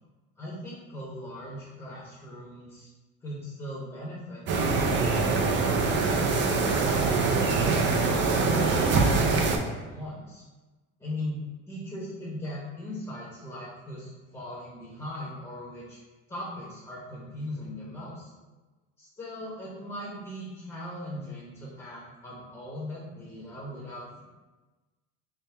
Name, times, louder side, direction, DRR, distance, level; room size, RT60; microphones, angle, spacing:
voice 1, 0.4-2.9 3.2-10.4 11.0-16.0 16.3-18.3 19.0-24.2, left 1 dB, 15° left, -7 dB, 0.9 m, -39 dB
sound 1, 4.5-9.6, right 4 dB, 40° right, 0.5 m, -24 dB
3.6 x 2.2 x 3.3 m, 1.2 s
supercardioid pair, 110°, 31 cm